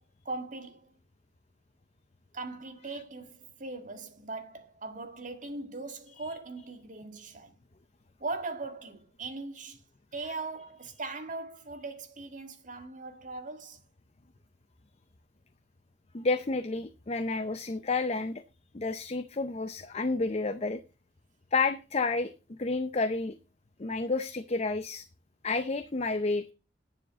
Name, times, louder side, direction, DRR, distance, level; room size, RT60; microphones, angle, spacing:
voice 1, 0.3-0.9 2.3-7.5 8.2-9.8 10.1-13.8, right 3 dB, 45° right, 2.0 m, -40 dB
voice 2, 16.1-18.4 18.7-20.8 21.5-23.4 23.8-25.0 25.4-26.4, left 3 dB, 35° left, 0.6 m, -30 dB
9.6 x 7.3 x 6.6 m
head